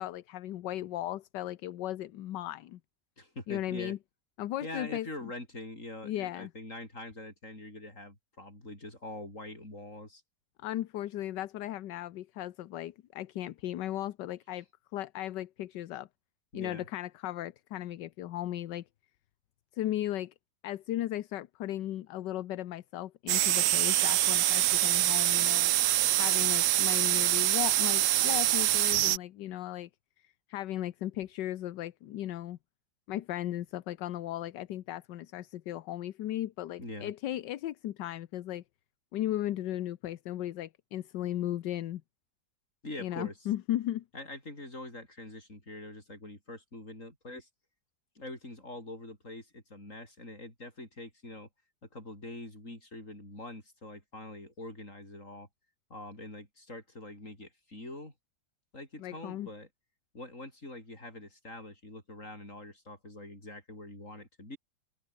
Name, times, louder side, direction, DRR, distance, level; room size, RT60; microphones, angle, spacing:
voice 1, 0.0-2.8 3.5-4.0 4.4-5.3 6.0-6.5 10.6-14.6 14.9-16.1 16.5-18.8 19.7-20.3 20.6-25.7 26.2-29.9 30.2-32.6 33.1-38.6 39.1-42.0 43.0-44.0 59.0-59.5, left 13 dB, 75° left, 1.4 m, -36 dB
voice 2, 3.2-3.9 4.6-10.2 16.5-16.9 36.8-37.1 42.8-43.4 44.1-47.5 48.2-51.5 51.9-55.5 55.9-58.1 58.7-59.7 60.1-64.6, left 1 dB, 45° left, 7.9 m, -44 dB
sound 1, 23.3-29.2, right 14 dB, 80° right, 0.7 m, -25 dB
open air
omnidirectional pair, 1.9 m